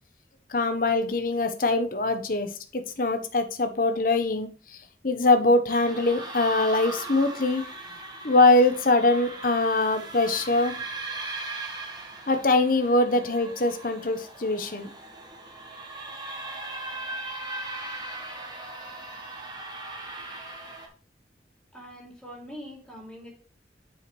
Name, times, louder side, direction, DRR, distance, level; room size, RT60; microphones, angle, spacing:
voice 1, 0.5-4.5 5.0-7.6 8.2-10.8 12.3-14.9, left 2 dB, 50° left, 7 dB, 0.9 m, -23 dB
sound 1, 5.7-20.9, right 2 dB, 25° right, 1.2 m, -38 dB
voice 2, 21.7-23.3, equal, 5° left, -3 dB, 2.6 m, -43 dB
9.4 x 4.9 x 3.1 m, 0.38 s
head